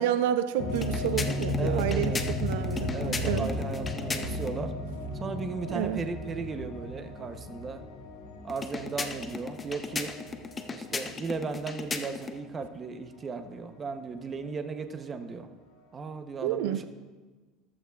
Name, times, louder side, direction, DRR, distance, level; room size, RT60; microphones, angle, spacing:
voice 1, 0.0-3.5 5.7-6.0 16.4-16.8, right 11 dB, 85° right, 11 dB, 0.6 m, -29 dB
sound 1, 0.6-11.4 11.9-12.0 13.8-13.9, left 2 dB, 65° left, 2.0 m, -34 dB
sound 2, 0.7-4.6 8.5-12.4, left 4 dB, 15° left, 0.6 m, -37 dB
voice 2, 1.6-2.2 2.9-4.7 5.2-7.8 8.4-10.1 10.7-15.5 15.9-16.8, right 4 dB, 20° right, 8 dB, 0.7 m, -36 dB
14.5 x 12.0 x 2.3 m, 1.3 s
cardioid pair, 155°, 0 cm